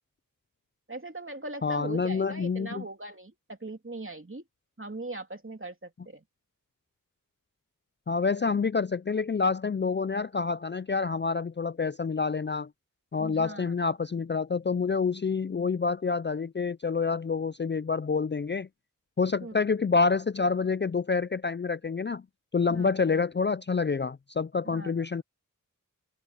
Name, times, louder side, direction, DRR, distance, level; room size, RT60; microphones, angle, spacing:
voice 1, 0.9-4.4 4.8-6.2 13.2-13.9 19.4-19.5 22.7-22.9 24.6-24.9, right 2 dB, 40° right, 3.0 m, -40 dB
voice 2, 1.6-2.8 8.1-12.7 13.1-18.7 19.2-22.2 22.5-25.2, left 5 dB, 35° left, 0.4 m, -27 dB
wide cardioid pair, 50°, 33 cm